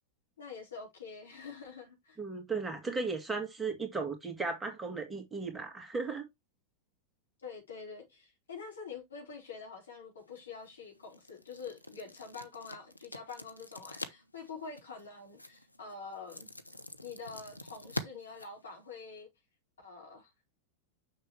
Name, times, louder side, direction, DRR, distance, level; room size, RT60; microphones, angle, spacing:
voice 1, 0.4-2.2 7.4-16.5 17.0-19.3 19.8-20.3, left 5 dB, 70° left, 4.9 m, -46 dB
voice 2, 2.2-6.3, right 4 dB, 10° right, 2.2 m, -36 dB
sound 1, 10.2-19.2, left 1 dB, 85° left, 0.9 m, -46 dB
6.6 x 6.6 x 3.4 m
figure-of-eight pair, 90°, 0 cm